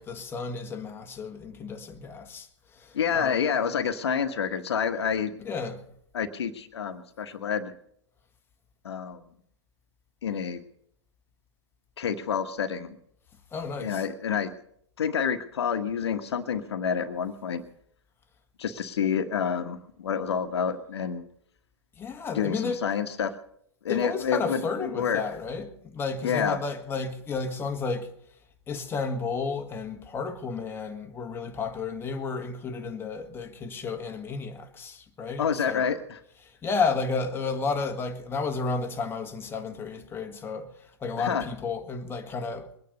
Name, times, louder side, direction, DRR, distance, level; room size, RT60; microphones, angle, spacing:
voice 1, 0.0-2.5 2.7-3.4 5.4-5.8 13.5-14.0 22.0-22.8 23.9-28.1 28.7-35.8 36.4-40.7 41.0-42.8, left 4 dB, 15° left, 1.7 m, -32 dB
voice 2, 2.9-5.3 6.1-7.7 8.8-9.2 10.2-10.6 12.0-13.0 13.8-14.5 15.0-17.6 18.6-21.2 22.3-23.3 23.8-25.2 26.2-26.6 35.4-36.2 41.2-41.4, left 7 dB, 65° left, 1.4 m, -28 dB
22.0 x 9.5 x 6.6 m
figure-of-eight pair, 110°, 15 cm